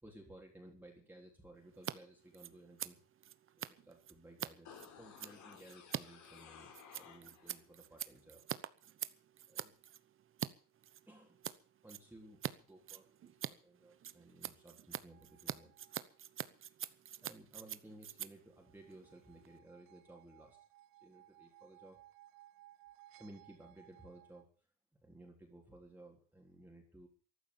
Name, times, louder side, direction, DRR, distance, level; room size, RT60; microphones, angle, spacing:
voice 1, 0.0-3.0 3.6-8.4 9.5-9.8 11.1-11.4 11.8-12.4 12.7-15.7 17.2-20.6 21.0-22.0 23.2-24.7 25.0-27.1, right 1 dB, 5° right, -1 dB, 3.7 m, -57 dB
Scissors, 1.7-1.9 2.2-10.5 10.8-11.6 11.9-12.5 12.8-19.6, right 10 dB, 35° right, 0.9 m, -45 dB
sound 1, 4.6-7.6 8.0-8.1, left 7 dB, 55° left, 4.2 m, -56 dB
sound 2, 15.1-16.2 18.6-24.4, right 14 dB, 75° right, 1.3 m, -62 dB
14.5 x 12.0 x 7.1 m, 0.40 s
cardioid pair, 130°, 36 cm